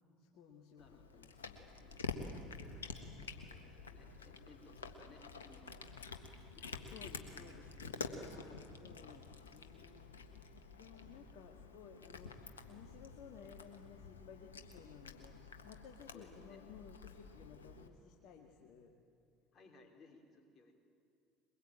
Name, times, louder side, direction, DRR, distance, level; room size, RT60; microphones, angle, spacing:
voice 1, 0.2-1.7 2.4-2.9 6.9-8.0 8.3-10.1 10.8-19.0, left 7 dB, 60° left, 2 dB, 1.9 m, -57 dB
Cat, 0.8-17.9, left 4 dB, 90° left, 1.5 m, -49 dB
voice 2, 0.8-1.4 1.8-2.1 3.2-8.7 16.1-16.6 19.5-20.7, left 3 dB, 40° left, 3 dB, 4.5 m, -62 dB
22.5 x 22.0 x 9.0 m, 2.6 s
hypercardioid pair, 70°, 0 cm